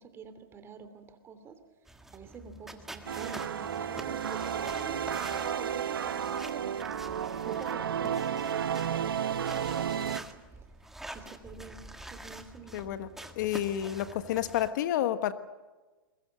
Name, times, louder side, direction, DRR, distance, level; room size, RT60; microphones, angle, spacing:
voice 1, 0.0-1.6 2.1-7.0 7.4-10.0 10.3-10.4 11.1-11.8 12.1-13.0, right 5 dB, 20° right, 10 dB, 2.8 m, -47 dB
sound 1, 1.9-14.7, right 1 dB, 5° right, 1.7 m, -47 dB
sound 2, 3.1-10.2, right 8 dB, 85° right, 1.1 m, -32 dB
voice 2, 12.7-13.1 13.4-15.3, left 12 dB, 55° left, 11 dB, 1.4 m, -30 dB
22.0 x 22.0 x 7.8 m, 1.2 s
hypercardioid pair, 130°, 12 cm